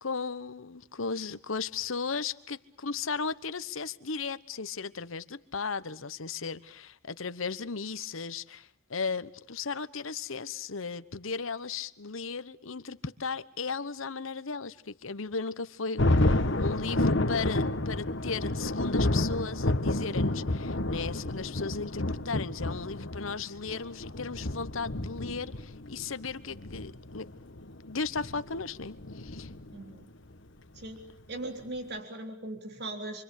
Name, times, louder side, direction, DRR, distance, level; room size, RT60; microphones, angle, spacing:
voice 1, 0.0-27.3 27.9-29.5, left 4 dB, 85° left, 1.1 m, -36 dB
Thunder, 16.0-29.9, left 1 dB, 65° left, 1.7 m, -30 dB
voice 2, 29.7-30.1 30.7-33.2, right 2 dB, 55° right, 3.8 m, -39 dB
28.5 x 24.5 x 8.4 m
head